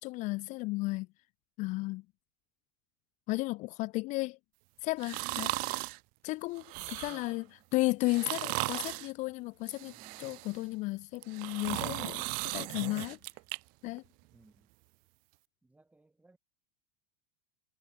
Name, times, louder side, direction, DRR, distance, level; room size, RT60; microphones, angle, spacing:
voice 1, 0.0-1.1 1.6-2.0 3.3-4.4 4.8-5.5 6.2-7.4 7.7-9.9 10.2-12.3 12.5-13.2 13.8-14.0, left 21 dB, 40° left, 0.4 m, -33 dB
sound 1, 5.0-6.0 6.6-7.3 8.0-9.1 9.7-10.6 11.1-13.6 14.0-14.1, right 31 dB, 45° right, 0.5 m, -37 dB
voice 2, 6.7-7.7 9.8-10.4 14.2-14.7 15.6-16.4, right 2 dB, 5° right, 6.5 m, -62 dB
supercardioid pair, 130°, 20 cm